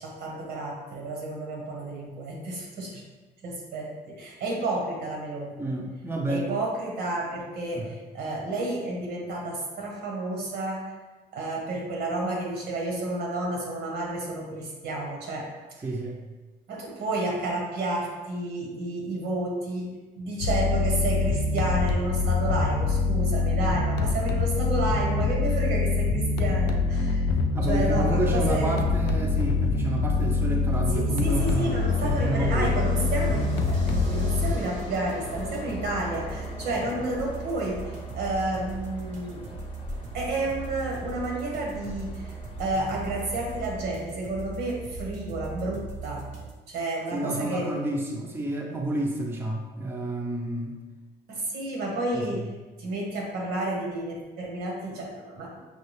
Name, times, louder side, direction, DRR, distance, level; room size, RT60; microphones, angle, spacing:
voice 1, 0.0-3.0 3.4-5.5 6.3-10.9 11.3-15.5 16.7-19.9 20.1-27.2 27.6-28.7 30.9-37.8 38.1-39.5 40.1-42.3 42.6-46.3 46.7-47.7 51.3-52.5 52.8-55.6, right 2 dB, 80° right, -1 dB, 1.2 m, -31 dB
voice 2, 5.6-6.5 7.7-7.9 15.8-16.2 27.5-31.7 32.0-32.8 47.1-50.8 52.1-52.4, right 2 dB, 10° right, -1 dB, 0.5 m, -30 dB
sound 1, 20.4-34.5, left 4 dB, 85° left, 0.5 m, -25 dB
sound 2, 29.9-46.5, right 4 dB, 50° right, 0.8 m, -40 dB
Train, 31.3-43.9, left 2 dB, 35° left, 0.6 m, -41 dB
5.5 x 2.3 x 3.2 m, 1.2 s
cardioid pair, 110°, 17 cm